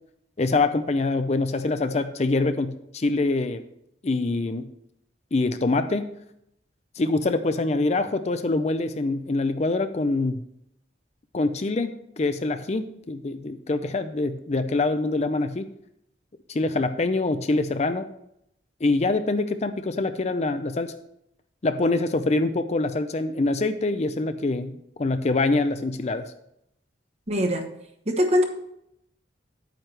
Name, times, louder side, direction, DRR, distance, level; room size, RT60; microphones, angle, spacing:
voice 1, 0.4-3.6 4.0-4.7 5.3-6.1 7.0-10.4 11.3-15.7 16.5-18.1 18.8-20.9 21.6-26.3, left 2 dB, 35° left, 10 dB, 0.5 m, -25 dB
voice 2, 27.3-27.7 28.1-28.4, equal, 35° right, 4 dB, 1.1 m, -22 dB
9.3 x 8.9 x 3.3 m, 0.77 s
head